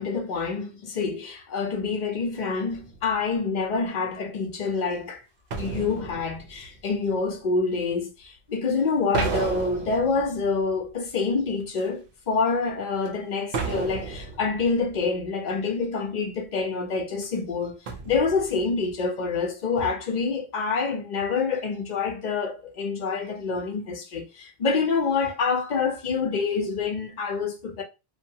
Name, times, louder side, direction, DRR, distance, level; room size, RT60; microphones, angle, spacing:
voice 1, 0.0-5.2 5.6-17.8 18.1-27.8, left 4 dB, 50° left, 0.6 m, -27 dB
sound 1, 2.7-3.3 5.5-7.3 9.1-11.1 11.8-11.9 13.1-13.2 13.5-15.1 17.2-17.3 17.9-18.9, right 4 dB, 65° right, 0.7 m, -33 dB
2.7 x 2.1 x 2.7 m
omnidirectional pair, 1.1 m